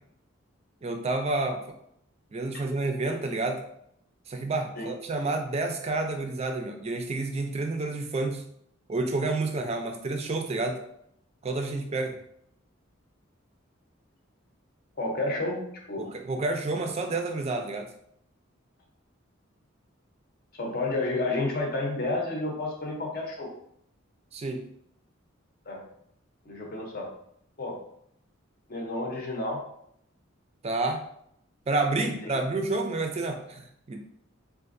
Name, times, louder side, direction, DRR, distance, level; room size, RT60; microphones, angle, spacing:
voice 1, 0.8-1.8 2.3-3.6 4.3-8.5 8.9-10.8 11.4-12.2 16.0-17.9 24.3-24.7 30.6-31.0 31.7-34.0, right 2 dB, 30° right, 4 dB, 0.4 m, -29 dB
voice 2, 15.0-16.0 20.5-23.5 25.7-25.8 26.4-27.1 27.6-27.8 28.7-29.6 32.0-32.4, left 2 dB, 45° left, 0 dB, 0.7 m, -31 dB
3.6 x 2.4 x 2.5 m, 0.71 s
head